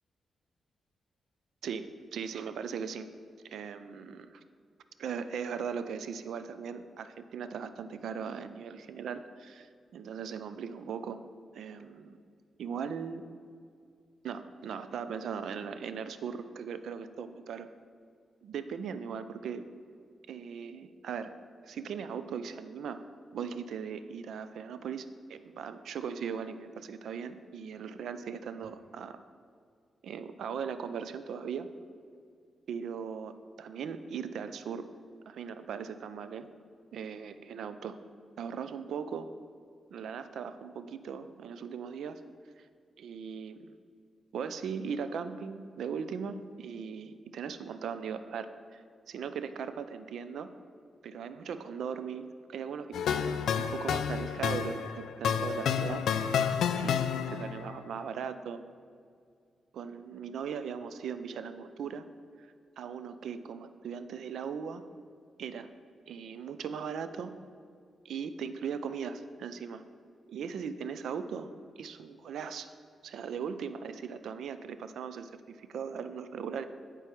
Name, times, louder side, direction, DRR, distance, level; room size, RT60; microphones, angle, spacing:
voice 1, 1.6-3.1 3.4-4.4 5.0-11.3 11.5-12.2 12.6-13.2 14.2-17.7 18.4-19.7 20.3-21.4 21.6-23.0 23.3-29.2 30.0-31.7 32.7-34.9 35.3-36.5 36.9-38.0 38.4-39.3 39.9-42.2 42.6-42.7 43.0-43.7 44.3-48.8 49.1-50.5 51.0-56.1 56.8-58.6 59.7-62.1 62.8-64.8 65.4-65.7 66.1-67.4 68.0-69.8 70.3-71.5 71.8-72.7 73.0-76.7, right 6 dB, 80° right, 11 dB, 0.4 m, -39 dB
sound 1, 52.9-57.6, left 7 dB, 85° left, 0.3 m, -30 dB
9.4 x 4.5 x 4.5 m, 2.2 s
wide cardioid pair, 130°, 0 cm